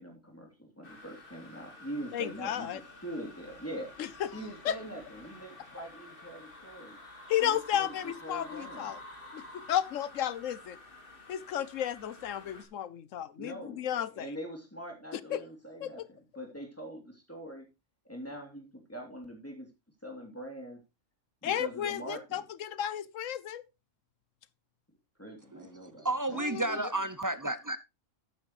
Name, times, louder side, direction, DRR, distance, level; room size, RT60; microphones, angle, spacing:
voice 1, 0.0-3.9 4.3-7.0 7.4-8.9 13.4-13.8 14.1-16.0 16.3-17.7 18.1-19.7 20.0-20.8 21.4-22.4 25.2-26.4, right 1 dB, 10° left, 3.1 m, -43 dB
sound 1, 0.8-12.6, left 2 dB, 45° left, 2.3 m, -50 dB
voice 2, 2.1-2.8 4.0-4.4 4.6-4.8 7.3-9.0 9.3-10.8 11.3-14.4 15.3-15.4 15.8-16.1 21.4-23.6, left 10 dB, 75° left, 1.1 m, -33 dB
voice 3, 25.5-27.8, right 2 dB, 25° right, 0.4 m, -32 dB
11.5 x 9.1 x 3.2 m
omnidirectional pair, 1.3 m